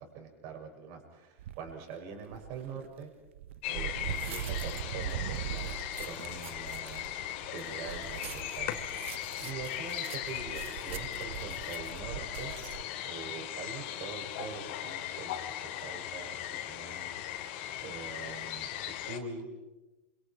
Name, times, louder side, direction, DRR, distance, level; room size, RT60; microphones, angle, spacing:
voice 1, 0.0-3.1 3.7-8.7 9.4-12.5 13.0-16.4 16.7-17.1 17.8-19.5, right 5 dB, 55° right, 2 dB, 7.0 m, -44 dB
sound 1, 1.4-1.7 2.3-12.8, right 12 dB, 75° right, 0.8 m, -41 dB
sound 2, 3.6-19.2, left 12 dB, 65° left, 3.0 m, -38 dB
28.5 x 27.0 x 5.2 m, 1.1 s
hypercardioid pair, 105°, 7 cm